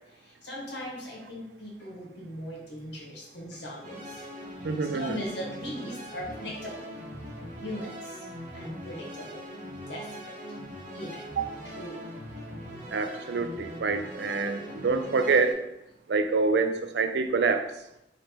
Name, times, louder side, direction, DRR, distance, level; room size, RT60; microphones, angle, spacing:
voice 1, 0.1-4.3 4.6-6.8 7.6-8.2 8.5-9.4 9.9-10.3 10.9-11.2 11.6-12.1, equal, 80° left, -3 dB, 1.3 m, -39 dB
sound 1, 3.8-15.5, equal, 45° right, 0.9 m, -41 dB
voice 2, 4.6-5.2 11.4-11.5 12.9-15.6 16.1-17.7, right 4 dB, 70° right, 8 dB, 0.4 m, -26 dB
3.2 x 2.9 x 4.4 m, 0.84 s
head